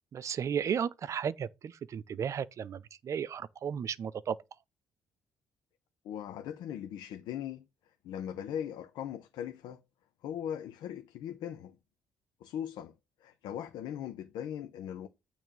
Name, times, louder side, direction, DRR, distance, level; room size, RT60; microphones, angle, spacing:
voice 1, 0.1-4.4, right 8 dB, 45° right, 0.7 m, -34 dB
voice 2, 6.0-7.7 8.0-9.8 10.2-11.8 12.4-12.9 13.2-15.1, left 9 dB, 85° left, 0.9 m, -39 dB
9.1 x 3.4 x 6.4 m
cardioid pair, 125°, 7 cm